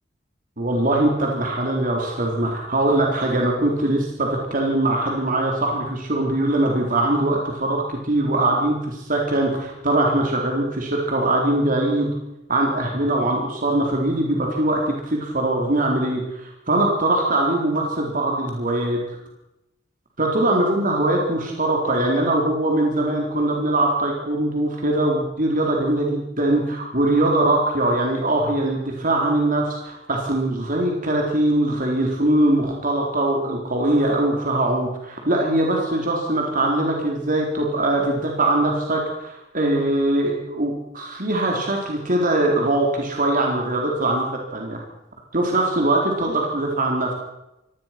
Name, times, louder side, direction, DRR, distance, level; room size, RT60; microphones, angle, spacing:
voice 1, 0.6-12.1 12.5-19.0 20.2-44.8 45.3-47.1, right 1 dB, 45° right, 0 dB, 4.1 m, -22 dB
25.5 x 18.0 x 6.0 m, 0.92 s
head